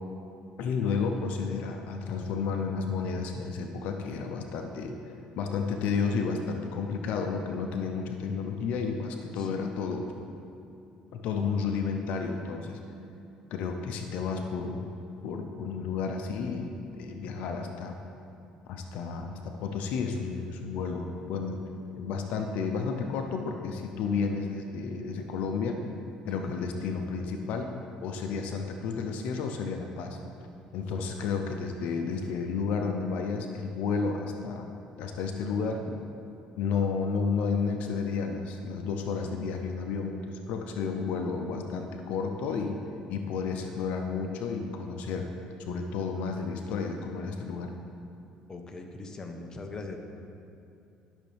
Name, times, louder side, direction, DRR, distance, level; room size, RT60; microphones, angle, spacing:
voice 1, 0.6-5.0 5.4-10.1 11.1-12.8 13.5-14.8 15.2-17.9 18.7-21.6 21.9-25.8 26.2-27.8 28.0-30.2 30.7-34.7 35.0-35.8 36.6-42.8 43.1-45.3 45.7-47.7, left 5 dB, 75° left, 4 dB, 0.7 m, -31 dB
voice 2, 9.4-9.7 26.3-26.5 31.0-31.1 35.9-36.0 48.5-50.0, left 3 dB, 25° left, 4 dB, 0.9 m, -41 dB
11.5 x 6.4 x 3.4 m, 2.6 s
cardioid pair, 100°, 2 cm